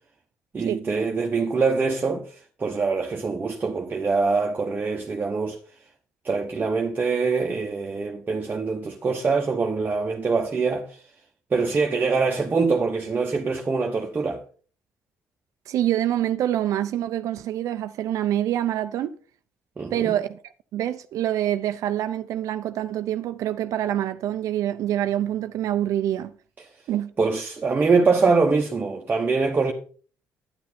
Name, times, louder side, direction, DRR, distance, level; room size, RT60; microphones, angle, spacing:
voice 1, 0.5-5.6 6.2-11.0 11.5-14.4 19.8-20.2 27.2-29.7, right 4 dB, 30° right, 1.0 m, -24 dB
voice 2, 15.7-19.1 19.9-20.4 20.7-26.3 26.9-27.1, right 12 dB, 70° right, 0.6 m, -26 dB
9.7 x 9.5 x 4.3 m
cardioid pair, 120°, 6 cm